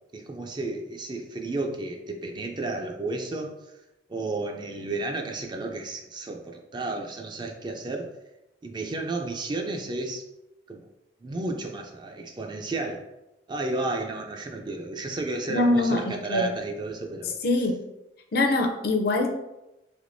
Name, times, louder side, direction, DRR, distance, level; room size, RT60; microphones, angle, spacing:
voice 1, 0.1-3.5 4.1-8.1 8.6-10.2 10.7-10.9 11.2-13.1 13.5-17.4, right 2 dB, 25° right, 3 dB, 0.3 m, -32 dB
voice 2, 15.5-16.5 17.4-17.8 18.3-19.3, left 2 dB, 55° left, 4 dB, 0.5 m, -23 dB
3.4 x 2.9 x 2.6 m, 0.92 s
head